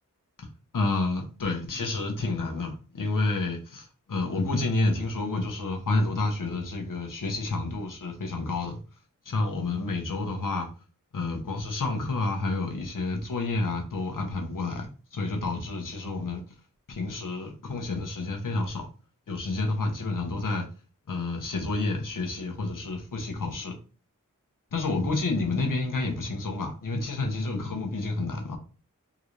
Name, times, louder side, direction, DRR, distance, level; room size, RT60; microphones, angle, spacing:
voice 1, 0.7-8.8 9.3-10.7 11.1-14.9 15.1-16.4 16.9-18.9 19.3-20.7 21.1-23.8 24.7-28.6, left 3 dB, 70° left, 0.9 m, -29 dB
3.8 x 2.5 x 3.1 m
wide cardioid pair, 45°, 33 cm